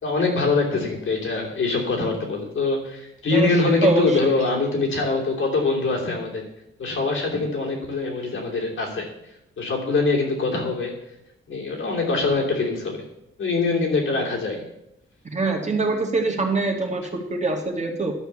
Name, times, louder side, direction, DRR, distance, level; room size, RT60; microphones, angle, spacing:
voice 1, 0.0-6.5 6.8-9.1 9.6-11.0 11.5-13.0 13.4-14.6, left 3 dB, 70° left, -1 dB, 3.1 m, -23 dB
voice 2, 3.3-4.3 15.3-18.1, right 2 dB, 35° right, 2 dB, 1.8 m, -24 dB
11.5 x 4.6 x 7.0 m, 0.84 s
cardioid pair, 90°, 21 cm